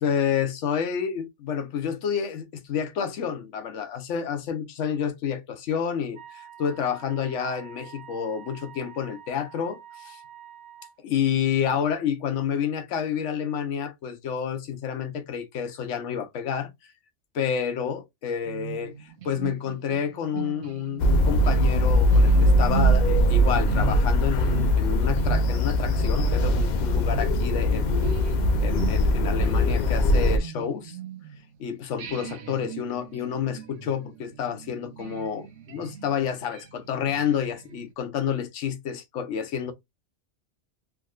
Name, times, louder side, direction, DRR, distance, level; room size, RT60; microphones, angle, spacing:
voice 1, 0.0-10.2 11.0-16.7 17.3-28.0 28.6-31.0 31.6-39.7, left 8 dB, 80° left, 1.0 m, -29 dB
Wind instrument woodwind instrument, 6.1-11.0, right 9 dB, 30° right, 0.9 m, -47 dB
sound 1, 18.5-31.5 32.0-37.9, right 8 dB, 85° right, 1.0 m, -38 dB
sound 2, 21.0-30.4, equal, 55° left, 0.5 m, -21 dB
3.5 x 2.7 x 2.3 m
omnidirectional pair, 1.2 m